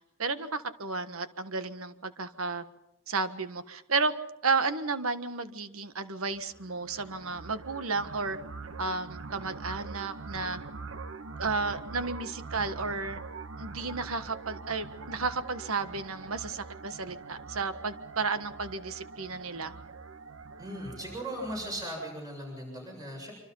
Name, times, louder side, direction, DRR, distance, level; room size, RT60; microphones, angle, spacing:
voice 1, 0.2-2.6 3.1-4.1 4.4-8.4 8.8-10.6 11.4-13.2 13.6-19.7, right 4 dB, 90° right, 10 dB, 1.4 m, -32 dB
sound 1, 6.3-21.8, right 4 dB, 75° right, 1.3 m, -44 dB
voice 2, 20.6-23.3, right 1 dB, 15° right, 1 dB, 7.4 m, -38 dB
26.0 x 25.5 x 5.6 m, 0.86 s
head